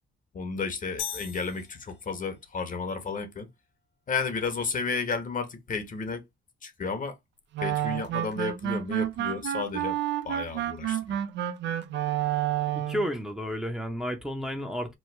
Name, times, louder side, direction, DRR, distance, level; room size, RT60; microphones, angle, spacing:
voice 1, 0.3-3.5 4.1-6.2 6.6-7.2 7.6-10.0 10.2-11.2, left 4 dB, 40° left, 0.9 m, -32 dB
sound 1, 1.0-2.4, left 8 dB, 85° left, 1.0 m, -39 dB
sound 2, 7.5-13.1, right 11 dB, 65° right, 0.4 m, -30 dB
voice 2, 12.9-15.0, equal, 5° right, 0.6 m, -31 dB
3.1 x 2.1 x 3.1 m
cardioid pair, 90°, 20 cm